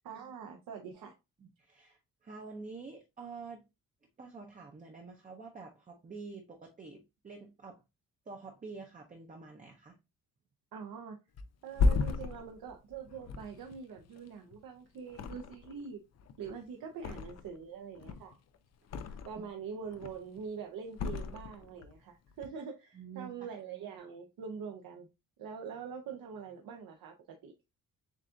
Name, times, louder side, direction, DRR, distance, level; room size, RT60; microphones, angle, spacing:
voice 1, 0.0-1.1 10.7-11.2 11.6-16.0 16.4-18.4 19.3-25.1 25.4-27.5, right 6 dB, 80° right, 0.8 m, -44 dB
voice 2, 1.4-3.6 4.2-7.8 8.3-10.0 19.0-19.4 22.9-23.5, right 4 dB, 25° right, 0.6 m, -48 dB
Thump thud, 11.4-14.6 15.1-15.9 16.1-17.6 17.9-19.5 19.9-20.4 20.9-21.9 22.3-22.5, left 4 dB, 50° left, 0.5 m, -34 dB
7.3 x 2.4 x 2.5 m
wide cardioid pair, 175°, 35 cm